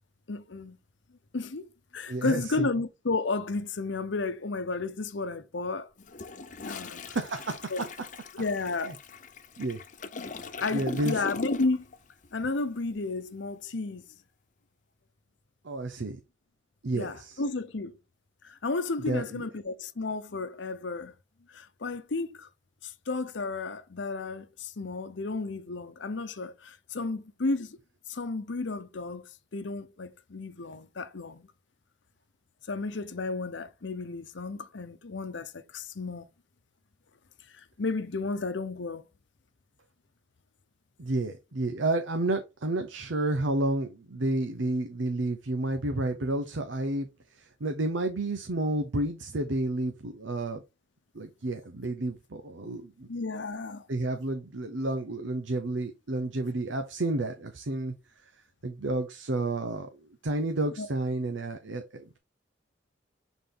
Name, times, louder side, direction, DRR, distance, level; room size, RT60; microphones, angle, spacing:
voice 1, 0.3-0.8 1.3-5.9 6.6-7.2 7.7-7.8 8.3-9.0 10.6-11.9 12.3-14.0 16.9-18.0 18.4-21.1 21.5-22.5 22.8-27.8 28.1-31.5 32.7-36.3 37.5-39.0 53.1-53.9 60.8-60.9, left 3 dB, 80° left, 0.8 m, -33 dB
voice 2, 2.1-2.7 7.0-7.7 8.9-9.0 9.6-9.8 10.7-11.2 15.6-16.2 16.8-17.4 19.1-19.4 41.0-50.6 51.1-53.1 53.9-57.9 58.6-62.2, right 2 dB, 90° right, 0.8 m, -31 dB
Toilet flush, 6.0-12.0 12.2-12.5, left 3 dB, 45° left, 0.7 m, -40 dB
6.9 x 4.0 x 3.8 m
head